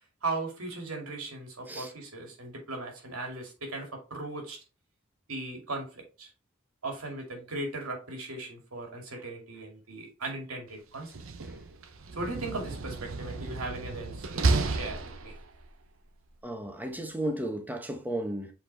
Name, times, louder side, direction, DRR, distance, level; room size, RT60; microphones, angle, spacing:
voice 1, 0.2-4.6 5.3-6.3 6.8-11.1 12.1-15.3, right 2 dB, 90° right, 2.4 m, -38 dB
Slam, 11.0-15.7, right 3 dB, 65° right, 0.8 m, -32 dB
voice 2, 16.4-18.5, right 1 dB, 10° right, 1.0 m, -34 dB
7.3 x 4.1 x 3.4 m
head